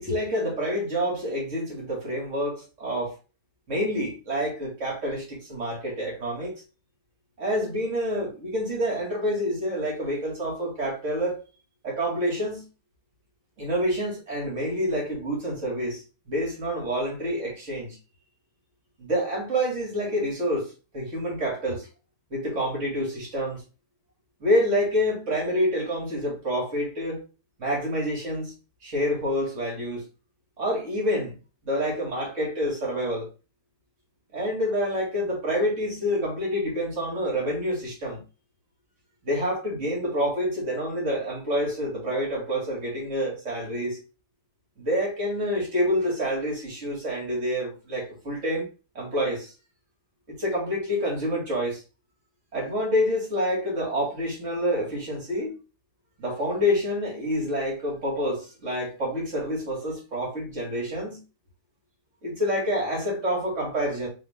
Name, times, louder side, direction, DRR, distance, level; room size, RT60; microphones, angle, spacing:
voice 1, 0.0-3.1 3.7-6.6 7.4-11.4 11.8-12.6 13.6-18.0 19.0-20.7 20.9-21.9 22.3-23.6 24.4-27.2 27.6-28.5 28.8-30.0 30.6-31.4 31.6-33.3 34.3-38.2 39.2-44.0 44.8-48.7 48.9-49.5 50.3-51.8 52.5-55.6 56.2-61.2 62.2-64.1, equal, 50° right, 2.5 m, -27 dB
3.8 x 3.5 x 3.6 m
omnidirectional pair, 1.6 m